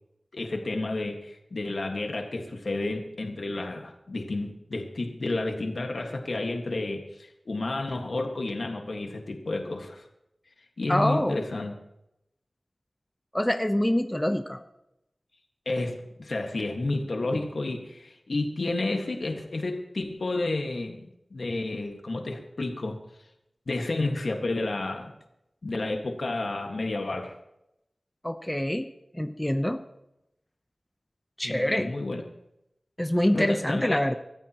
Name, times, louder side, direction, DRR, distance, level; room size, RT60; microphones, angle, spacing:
voice 1, 0.3-10.0 10.8-11.7 15.7-23.0 23.7-25.1 25.6-27.3 31.4-32.2 33.3-34.0, left 2 dB, 75° left, 3 dB, 1.7 m, -31 dB
voice 2, 10.9-11.4 13.3-14.6 28.2-28.9 29.1-29.8 31.4-31.9 33.0-34.2, left 1 dB, 10° left, 7 dB, 0.8 m, -25 dB
24.0 x 14.5 x 3.0 m, 0.85 s
wide cardioid pair, 60°, 0 cm